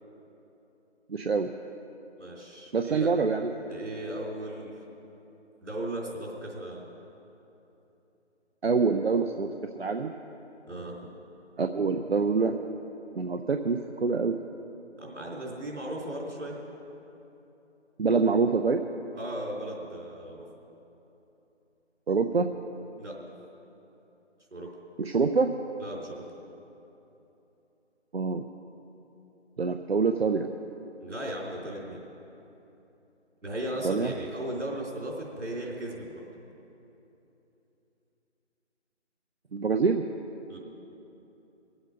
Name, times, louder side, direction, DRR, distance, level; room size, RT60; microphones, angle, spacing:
voice 1, 1.1-1.5 2.7-3.5 8.6-9.5 9.8-10.1 11.6-12.6 13.2-14.4 18.0-18.8 22.1-22.5 25.0-25.5 28.1-28.4 29.6-30.5 33.8-34.1 39.5-40.0, right 4 dB, 60° right, 5 dB, 0.6 m, -25 dB
voice 2, 2.2-3.1 3.7-4.7 5.6-6.8 10.7-11.0 15.0-16.6 19.2-20.5 23.0-23.2 24.5-24.7 25.8-26.2 31.0-32.0 33.4-36.2 40.5-40.6, right 1 dB, 75° right, -3 dB, 3.7 m, -36 dB
21.0 x 8.0 x 5.2 m, 3.0 s
figure-of-eight pair, 165°, 36 cm